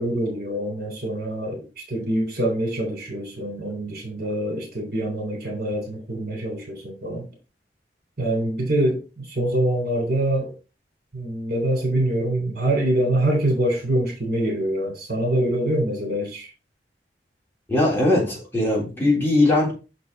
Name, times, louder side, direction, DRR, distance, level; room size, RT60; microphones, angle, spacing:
voice 1, 0.0-7.2 8.2-10.5 11.1-16.5, right 1 dB, 60° right, 3.4 m, -25 dB
voice 2, 17.7-19.7, left 2 dB, 15° left, 3.6 m, -20 dB
6.7 x 5.4 x 4.0 m
head